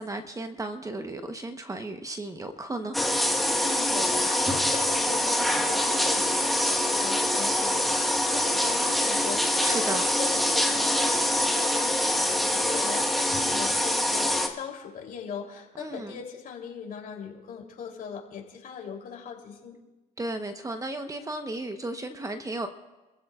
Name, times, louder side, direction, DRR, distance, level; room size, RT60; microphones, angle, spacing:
voice 1, 0.0-3.0 9.6-10.0 15.8-16.2 20.2-22.7, right 2 dB, 20° right, 7 dB, 1.0 m, -34 dB
sound 1, 2.9-14.5, left 1 dB, ahead, 1.3 m, -25 dB
voice 2, 3.6-19.8, left 6 dB, 55° left, 1 dB, 3.2 m, -39 dB
28.5 x 15.0 x 2.4 m, 1.1 s
cardioid pair, 110°, 17 cm